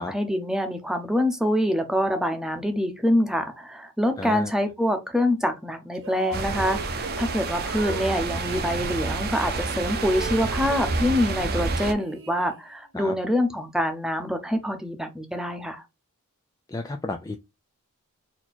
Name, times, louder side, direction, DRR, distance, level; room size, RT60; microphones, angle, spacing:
voice 1, 0.0-15.8, left 1 dB, 5° right, 0.8 m, -25 dB
voice 2, 4.2-4.5 12.9-13.2 16.7-17.4, left 2 dB, 15° left, 0.3 m, -32 dB
sound 1, 5.9-8.8 9.5-11.5 11.8-12.9, right 4 dB, 60° right, 1.1 m, -40 dB
sound 2, 6.3-11.9, right 3 dB, 45° right, 0.7 m, -29 dB
4.3 x 2.8 x 4.3 m
head